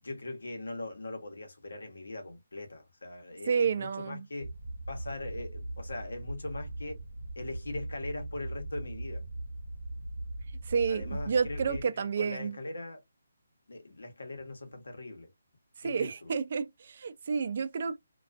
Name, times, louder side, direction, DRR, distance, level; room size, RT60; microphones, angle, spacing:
voice 1, 0.0-4.5 4.9-7.0 7.4-9.2 10.9-13.0 13.7-15.3 15.8-16.3, left 2 dB, 85° left, 0.9 m, -41 dB
voice 2, 3.5-4.3 10.6-12.5 15.8-18.0, right 6 dB, 45° right, 0.4 m, -30 dB
sound 1, 4.4-11.9, right 1 dB, 75° right, 0.7 m, -40 dB
2.4 x 2.3 x 2.3 m
hypercardioid pair, 165°, 0 cm